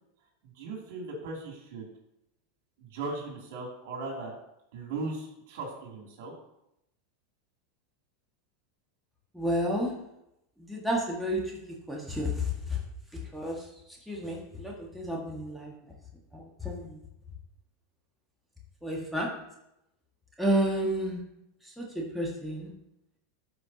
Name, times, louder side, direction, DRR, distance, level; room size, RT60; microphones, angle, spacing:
voice 1, 0.5-1.9 2.8-4.3 4.7-6.3, right 3 dB, 70° right, -1 dB, 2.8 m, -38 dB
voice 2, 9.3-9.9 10.6-11.5 11.9-12.8 13.3-13.6 14.1-15.7 16.3-17.0 18.8-19.3 20.4-21.2 21.8-22.7, equal, ahead, -3 dB, 1.8 m, -31 dB
13.0 x 5.1 x 2.9 m, 0.82 s
hypercardioid pair, 105°, 0 cm